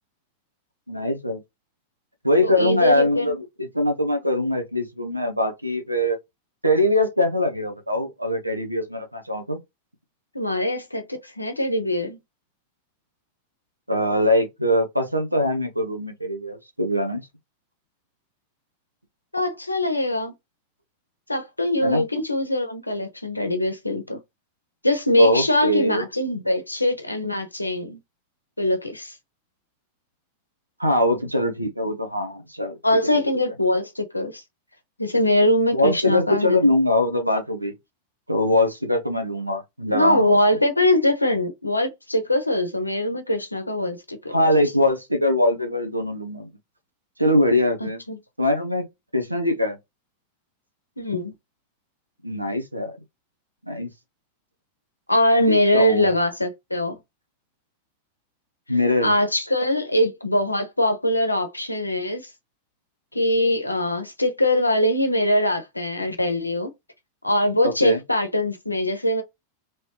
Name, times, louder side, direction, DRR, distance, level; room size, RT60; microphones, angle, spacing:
voice 1, 0.9-1.4 2.2-6.2 6.6-9.6 13.9-17.3 21.8-22.0 25.2-26.0 30.8-32.8 35.7-37.7 38.3-40.4 44.3-46.5 47.2-48.0 48.4-48.9 49.1-49.8 52.2-52.9 53.6-53.9 55.5-56.1 58.7-59.1 67.6-68.0, left 1 dB, 90° right, 0.9 m, -22 dB
voice 2, 2.4-3.4 10.3-12.2 19.3-20.3 21.3-24.2 24.8-28.0 28.6-29.1 32.8-34.4 35.0-36.6 39.9-44.3 47.8-48.2 51.0-51.3 55.1-57.0 59.0-62.3 63.1-66.7 67.2-69.2, left 1 dB, 85° left, 0.7 m, -22 dB
3.1 x 3.1 x 3.0 m
figure-of-eight pair, 90°, 0 cm